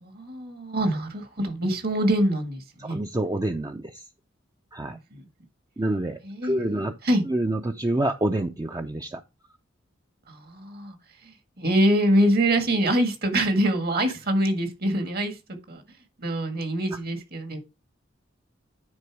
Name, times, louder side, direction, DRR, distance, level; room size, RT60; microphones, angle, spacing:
voice 1, 0.0-3.0 4.8-5.2 6.2-7.2 10.3-11.0 11.2-15.8 16.2-17.6, right 1 dB, 55° right, 1.8 m, -25 dB
voice 2, 2.8-4.0 4.7-5.0 5.8-6.9 7.3-9.2, right 1 dB, 20° right, 0.5 m, -27 dB
9.7 x 4.2 x 4.7 m
head